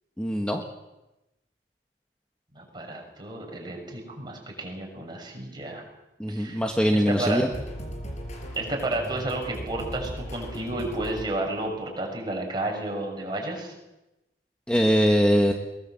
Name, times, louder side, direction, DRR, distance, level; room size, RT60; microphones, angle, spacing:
voice 1, 0.2-0.6 6.2-7.5 14.7-15.5, equal, 5° left, 2 dB, 1.4 m, -22 dB
voice 2, 2.5-5.8 6.3-6.6 6.9-7.4 8.5-13.7, right 2 dB, 25° right, 1 dB, 6.6 m, -31 dB
sound 1, 7.5-11.7, equal, 40° left, 5.6 m, -38 dB
22.5 x 20.5 x 7.7 m, 0.97 s
head